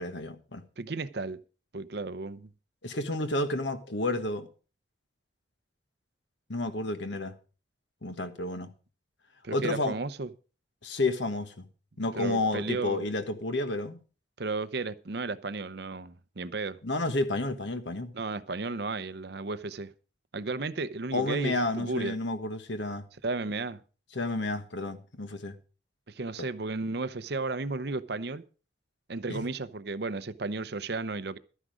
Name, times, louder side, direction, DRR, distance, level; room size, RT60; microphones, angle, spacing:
voice 1, 0.0-0.6 2.8-4.5 6.5-7.3 8.0-8.7 9.5-10.0 10.8-11.7 12.0-14.0 16.8-18.1 21.1-23.0 24.1-25.6 29.3-29.4, left 2 dB, 70° left, 1.4 m, -31 dB
voice 2, 0.8-1.4 1.7-2.5 9.4-10.3 12.2-13.1 14.4-16.8 18.1-19.9 20.3-22.1 23.2-23.8 26.1-28.4 29.1-31.4, right 3 dB, 60° right, 0.7 m, -34 dB
12.5 x 9.9 x 5.0 m
head